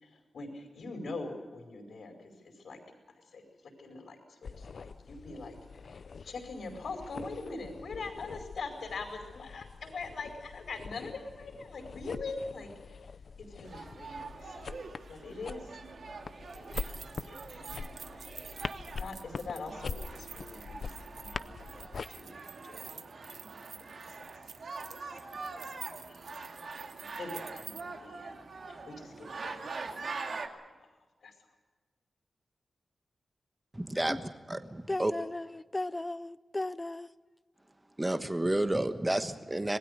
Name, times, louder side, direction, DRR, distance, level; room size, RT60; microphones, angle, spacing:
voice 1, 0.0-2.8 3.3-5.6 6.2-13.0 13.5-14.8 15.1-15.7 16.8-18.2 19.0-21.6 22.1-23.4 23.9-24.2 25.5-26.3 27.2-28.4 28.7-29.8 30.2-30.9 31.2-31.3, left 3 dB, 80° left, 4.6 m, -43 dB
sound 1, 4.4-22.1, left 5 dB, 60° left, 0.6 m, -44 dB
sound 2, 13.6-30.5, right 4 dB, 60° right, 2.2 m, -44 dB
sound 3, 16.5-27.8, right 6 dB, 75° right, 1.0 m, -49 dB
voice 2, 33.7-35.1 38.0-39.8, right 1 dB, 15° right, 1.2 m, -31 dB
voice 3, 34.9-37.1, left 2 dB, 15° left, 0.7 m, -36 dB
26.5 x 20.0 x 6.6 m
wide cardioid pair, 140°, 0 cm